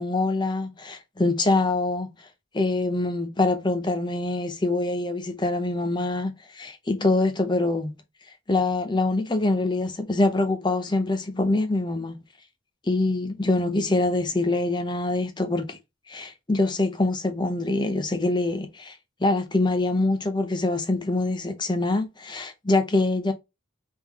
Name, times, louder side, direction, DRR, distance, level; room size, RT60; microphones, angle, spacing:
voice 1, 0.0-2.1 2.5-8.0 8.5-12.2 12.9-15.8 16.1-19.0 19.2-23.3, left 2 dB, 20° left, 0.5 m, -24 dB
3.6 x 3.4 x 2.9 m
head